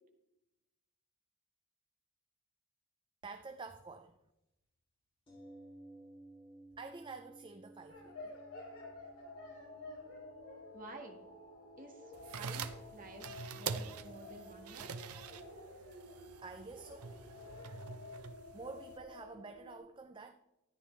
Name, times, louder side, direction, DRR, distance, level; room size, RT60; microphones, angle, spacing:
voice 1, 3.2-4.2 6.8-8.4 16.4-17.1 18.1-18.3 18.5-20.3, right 4 dB, 20° right, 0.4 m, -49 dB
sound 1, 5.3-15.1 15.4-15.5, right 1 dB, 25° left, 2.7 m, -59 dB
sound 2, 7.9-19.8, left 2 dB, 70° left, 4.7 m, -51 dB
voice 2, 10.7-11.2 11.8-14.9, right 2 dB, 40° right, 1.8 m, -52 dB
sound 3, 12.1-19.0, right 5 dB, 85° right, 0.7 m, -45 dB
13.5 x 9.6 x 3.3 m
head